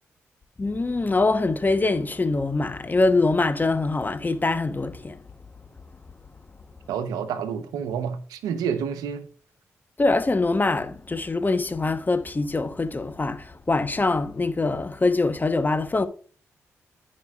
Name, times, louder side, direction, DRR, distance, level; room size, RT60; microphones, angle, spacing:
voice 1, 0.6-5.2 10.0-16.1, left 3 dB, 30° left, 1.0 m, -23 dB
voice 2, 6.9-9.3, right 7 dB, 85° right, 0.8 m, -29 dB
13.5 x 5.4 x 2.4 m
supercardioid pair, 45°, 6 cm